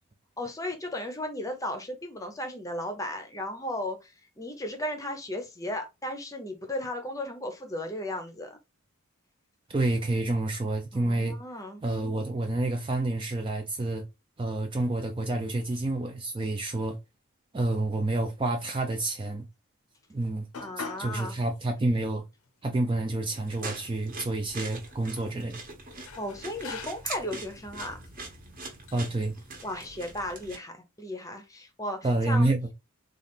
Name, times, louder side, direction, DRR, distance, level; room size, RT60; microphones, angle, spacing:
voice 1, 0.4-8.6 10.9-11.8 20.6-21.4 25.9-28.0 29.6-32.5, left 1 dB, 15° left, 0.7 m, -35 dB
voice 2, 9.7-11.4 11.8-14.1 14.4-17.0 17.5-19.4 20.1-20.5 21.0-22.2 22.6-25.6 28.9-29.4 32.0-32.7, right 2 dB, 20° right, 0.3 m, -28 dB
sound 1, 20.5-21.2 21.5-21.6 22.4-22.5 22.9-23.8 24.7-25.3 26.1-27.2 28.0-28.2 28.9-29.3, left 5 dB, 80° left, 0.7 m, -43 dB
sound 2, 23.3-30.6, right 3 dB, 40° right, 1.0 m, -42 dB
3.8 x 2.4 x 3.4 m
head